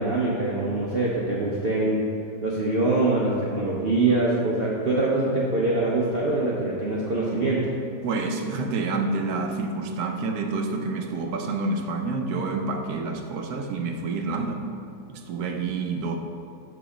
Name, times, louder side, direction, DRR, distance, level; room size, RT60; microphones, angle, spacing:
voice 1, 0.0-2.0 2.4-7.7, right 2 dB, 45° right, -5 dB, 0.8 m, -24 dB
voice 2, 8.0-14.6 15.1-16.2, right 3 dB, 70° right, 4 dB, 1.2 m, -28 dB
7.2 x 5.0 x 5.0 m, 2.7 s
omnidirectional pair, 1.8 m